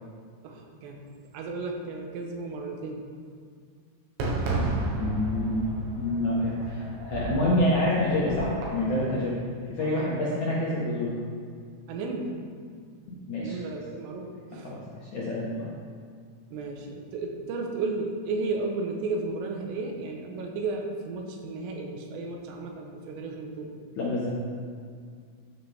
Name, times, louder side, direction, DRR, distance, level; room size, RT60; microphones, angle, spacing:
voice 1, 0.4-3.0 9.8-10.1 11.9-12.4 13.4-14.7 16.5-23.7, right 3 dB, 85° right, 1 dB, 3.9 m, -34 dB
Fireworks, 4.2-9.3, right 2 dB, 70° right, 3.5 m, -33 dB
voice 2, 5.0-5.7 6.0-9.4 9.7-11.1 13.1-13.6 14.6-14.8 15.1-15.7 24.0-24.3, left 1 dB, 75° left, -6 dB, 1.7 m, -27 dB
13.5 x 8.8 x 3.6 m, 2.1 s
omnidirectional pair, 5.7 m